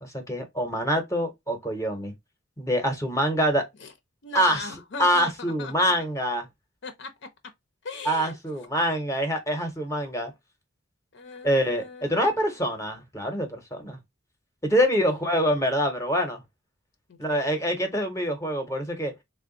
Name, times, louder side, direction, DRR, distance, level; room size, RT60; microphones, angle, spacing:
voice 1, 0.0-2.1 2.6-3.7 4.3-4.6 5.0-6.5 8.0-10.3 11.4-14.0 14.6-16.4 17.2-19.1, equal, 15° left, 0.8 m, -25 dB
voice 2, 4.2-5.9 6.8-7.3 7.8-8.4 11.1-12.6 15.0-15.3 17.1-17.7, left 4 dB, 65° left, 0.6 m, -38 dB
3.4 x 2.2 x 3.7 m
head